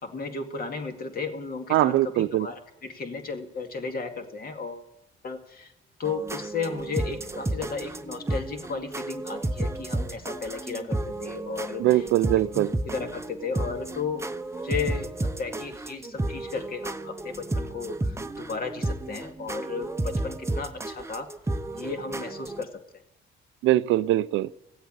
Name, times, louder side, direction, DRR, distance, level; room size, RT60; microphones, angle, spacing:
voice 1, 0.0-4.9 5.2-5.7 6.0-12.1 12.5-14.3 14.6-21.3 21.7-22.7, left 5 dB, 50° left, 2.1 m, -34 dB
voice 2, 1.7-2.5 11.8-12.7 23.6-24.5, right 15 dB, 85° right, 0.5 m, -22 dB
sound 1, 6.0-22.6, right 2 dB, 15° right, 0.7 m, -32 dB
15.5 x 8.0 x 9.9 m
cardioid pair, 90°, 20 cm